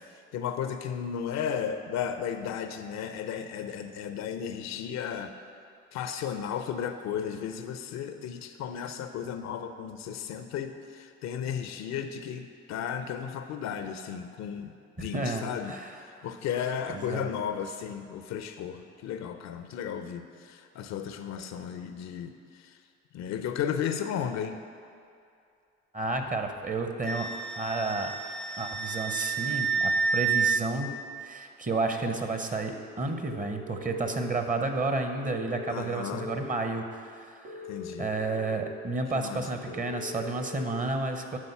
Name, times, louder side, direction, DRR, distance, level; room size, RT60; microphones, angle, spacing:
voice 1, 0.3-5.3 5.9-15.7 16.0-22.3 22.6-22.7 23.1-24.6 35.7-36.3 37.7-38.1 39.1-39.8, left 8 dB, 60° left, 8 dB, 0.6 m, -34 dB
voice 2, 15.0-16.3 16.9-17.3 25.9-27.3 27.6-28.1 28.6-37.6 38.0-41.4, right 3 dB, 25° right, 5 dB, 0.9 m, -31 dB
Wind instrument woodwind instrument, 27.1-30.6, right 5 dB, 5° left, 0.3 m, -29 dB
sound 1, 33.2-34.1 35.2-36.3 37.4-38.6 39.7-40.6, left 4 dB, 70° right, 1.4 m, -41 dB
11.0 x 4.0 x 5.6 m, 2.4 s
hypercardioid pair, 60°, 31 cm